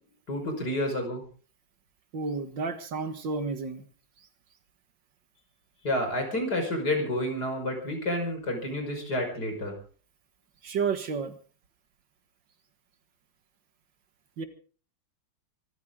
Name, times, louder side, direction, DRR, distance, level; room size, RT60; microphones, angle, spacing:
voice 1, 0.3-1.2 5.8-9.7, left 1 dB, 55° left, 3 dB, 6.0 m, -29 dB
voice 2, 2.1-3.8 10.6-11.4 14.4-14.5, right 5 dB, 75° right, 9 dB, 2.3 m, -31 dB
24.5 x 14.0 x 3.8 m, 0.40 s
omnidirectional pair, 2.0 m